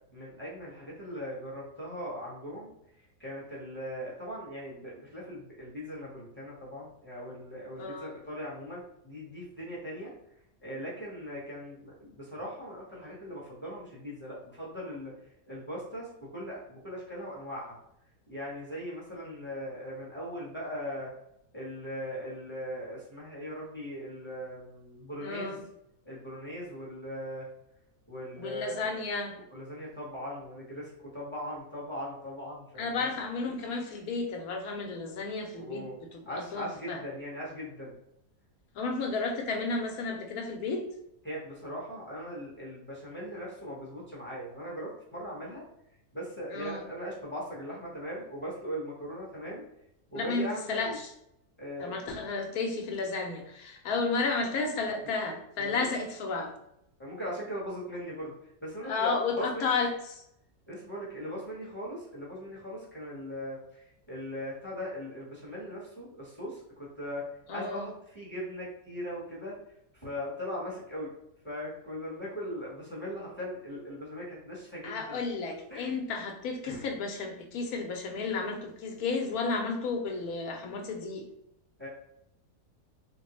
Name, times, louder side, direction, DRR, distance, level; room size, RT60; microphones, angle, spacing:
voice 1, 0.1-2.7 3.2-10.1 10.6-15.1 15.5-17.8 18.3-21.1 21.5-25.6 26.0-27.5 28.1-29.0 29.5-33.1 35.5-35.9 36.2-37.9 41.2-45.6 46.1-49.6 50.1-51.0 51.6-51.9 55.6-55.8 57.0-58.3 58.6-59.7 60.7-67.2 67.5-69.5 69.9-71.1 71.4-75.2 75.7-75.9 76.6-76.9 81.8-81.9, equal, 10° left, -6 dB, 0.9 m, -39 dB
voice 2, 7.8-8.1 25.2-25.6 28.3-29.4 32.8-37.0 38.7-40.9 46.5-46.8 50.1-51.1 51.8-56.5 58.8-60.2 67.5-67.9 74.8-81.2, left 4 dB, 70° left, 3 dB, 1.1 m, -32 dB
3.8 x 2.2 x 3.0 m, 0.78 s
omnidirectional pair, 1.6 m